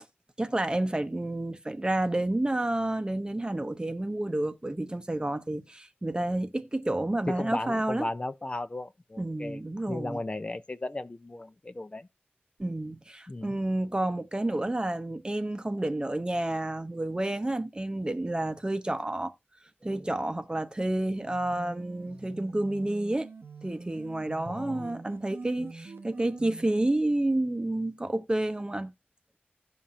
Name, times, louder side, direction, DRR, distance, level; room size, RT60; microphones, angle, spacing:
voice 1, 0.4-8.1 9.2-10.2 12.6-19.3 19.8-23.3 23.6-28.9, right 1 dB, 25° right, 0.7 m, -30 dB
voice 2, 7.3-9.6 9.9-12.1 13.3-13.6 24.4-24.9, left 2 dB, 30° left, 0.4 m, -35 dB
sound 1, 21.1-26.9, right 3 dB, 85° right, 0.9 m, -45 dB
16.5 x 5.6 x 2.4 m
wide cardioid pair, 85°, 4 cm